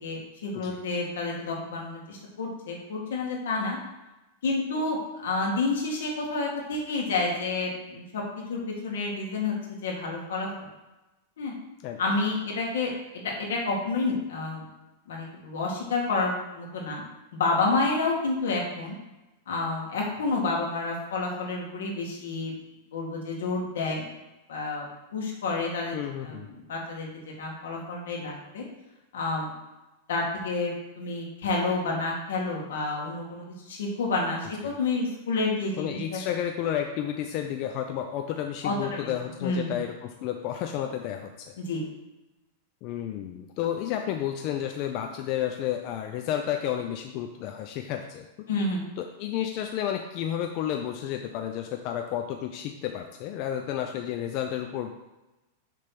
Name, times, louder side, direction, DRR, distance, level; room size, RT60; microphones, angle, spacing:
voice 1, 0.0-3.8 4.4-8.2 8.5-9.6 9.8-10.5 11.4-11.5 12.0-14.7 15.1-17.0 17.3-19.0 19.5-22.5 22.9-24.0 24.5-24.9 25.1-26.0 26.2-28.6 29.1-29.5 30.1-36.2 38.6-38.7 39.4-39.8 41.6-41.8 48.5-48.8, left 3 dB, 85° left, -1 dB, 2.0 m, -29 dB
voice 2, 25.9-26.5 34.6-34.7 35.8-41.5 42.8-48.5 49.0-54.9, left 10 dB, 45° left, 4 dB, 0.5 m, -31 dB
6.4 x 3.4 x 6.0 m, 1.0 s
supercardioid pair, 145°, 0 cm